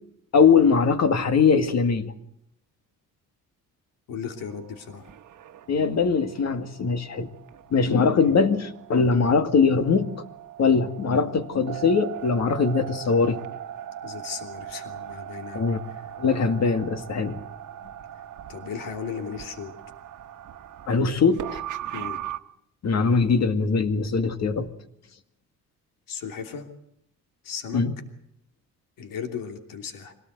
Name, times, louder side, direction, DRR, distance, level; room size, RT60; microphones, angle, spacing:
voice 1, 0.3-2.1 5.7-7.3 7.7-10.1 10.6-13.4 15.5-15.8 16.2-17.4 20.9-21.6 22.8-24.7 27.7-27.9, left 5 dB, 55° left, 2.2 m, -21 dB
voice 2, 4.1-5.1 14.0-15.7 18.5-19.7 21.9-22.2 26.1-26.7 27.4-27.8 29.0-30.1, left 6 dB, 85° left, 3.1 m, -36 dB
sound 1, 4.4-22.4, right 11 dB, 65° right, 1.3 m, -40 dB
25.0 x 18.0 x 8.1 m
cardioid pair, 120°, 33 cm